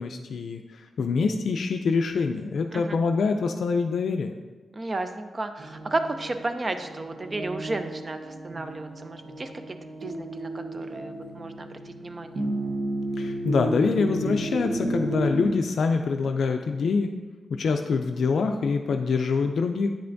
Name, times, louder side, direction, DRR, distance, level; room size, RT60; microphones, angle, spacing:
voice 1, 0.0-4.3 13.2-17.1 17.5-19.9, left 4 dB, 70° left, 5 dB, 0.3 m, -25 dB
voice 2, 4.7-9.8 10.0-12.4, right 2 dB, 35° right, 8 dB, 0.5 m, -33 dB
sound 1, 5.6-15.5, right 2 dB, 65° right, 0.8 m, -33 dB
8.6 x 5.6 x 2.6 m, 1.3 s
cardioid pair, 90°, 0 cm